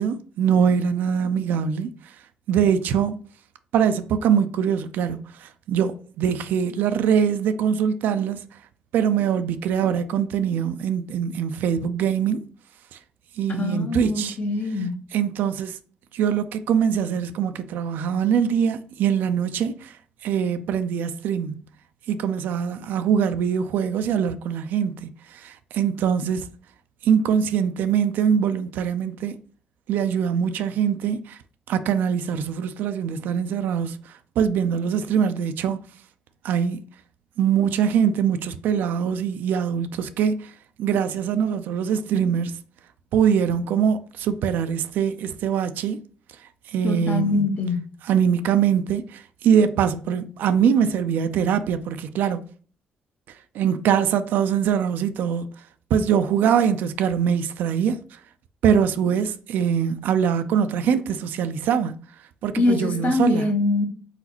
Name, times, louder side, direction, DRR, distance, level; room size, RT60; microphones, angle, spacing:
voice 1, 0.0-1.9 2.5-3.2 3.7-8.4 8.9-12.4 12.9-13.0 13.4-14.4 15.1-15.8 16.1-19.9 20.2-21.6 22.1-26.5 27.0-29.4 29.9-31.4 31.7-34.0 34.4-35.8 36.4-36.8 37.4-40.5 40.8-42.6 43.1-46.0 46.7-47.4 48.0-52.4 53.5-55.5 55.9-58.2 58.6-61.9 62.4-63.5, right 8 dB, 80° right, 0.4 m, -23 dB
voice 2, 13.6-14.9 46.8-47.8 62.6-63.9, left 2 dB, 50° left, 1.1 m, -23 dB
4.0 x 3.9 x 2.9 m
supercardioid pair, 60°, 3 cm